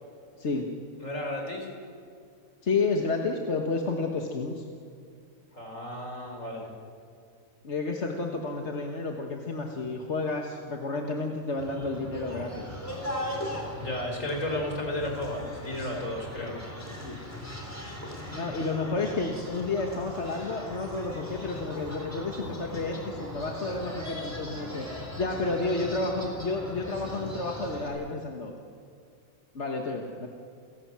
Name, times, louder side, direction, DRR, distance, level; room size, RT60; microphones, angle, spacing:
voice 1, 0.4-0.7 2.6-4.6 7.6-12.6 17.0-17.2 18.3-24.9 25.2-28.5 29.5-30.3, left 3 dB, 60° left, 1 dB, 1.8 m, -31 dB
voice 2, 1.0-1.7 5.5-6.7 13.7-16.6, left 1 dB, 75° left, 1 dB, 5.0 m, -33 dB
sound 1, 11.6-27.9, left 1 dB, 10° left, 4.2 m, -39 dB
30.0 x 17.5 x 7.5 m, 2.3 s
omnidirectional pair, 1.4 m